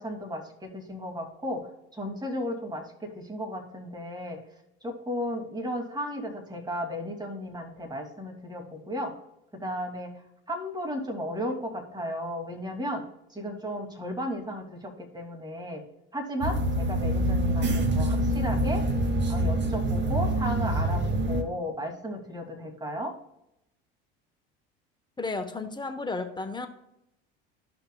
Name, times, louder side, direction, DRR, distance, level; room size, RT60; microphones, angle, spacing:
voice 1, 0.0-4.4 4.8-9.2 9.5-10.1 10.5-13.0 13.3-15.8 16.1-18.9 19.3-23.1, equal, 15° right, 2 dB, 2.4 m, -34 dB
sound 1, 16.4-21.4, right 1 dB, 35° right, 1.7 m, -26 dB
voice 2, 25.2-26.7, left 3 dB, 15° left, 6 dB, 1.0 m, -33 dB
14.0 x 5.8 x 2.3 m, 0.82 s
hypercardioid pair, 85°, 30 cm